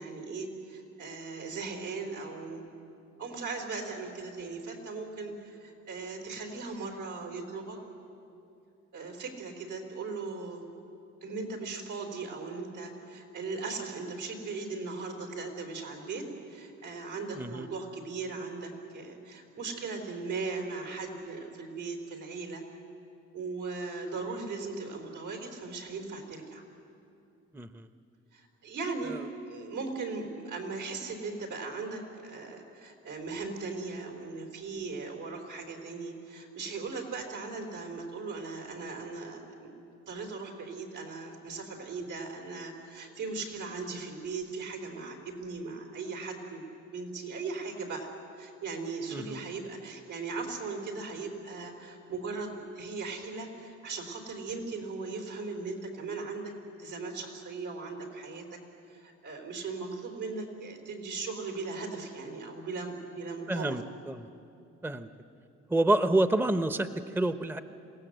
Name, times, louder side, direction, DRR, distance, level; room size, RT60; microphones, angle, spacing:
voice 1, 0.0-2.7 3.2-7.8 8.9-10.6 11.2-22.6 23.3-26.6 28.3-29.2 29.5-39.7 40.1-48.1 48.4-56.5 56.8-58.6 58.9-63.7, right 4 dB, 80° right, 2 dB, 4.2 m, -38 dB
voice 2, 17.4-17.7 27.5-27.9 29.1-29.2 49.1-49.4 63.5-64.3 64.8-65.1 65.7-67.6, right 2 dB, 5° right, 11 dB, 0.7 m, -28 dB
27.0 x 17.0 x 8.0 m, 2.7 s
cardioid pair, 90°, 30 cm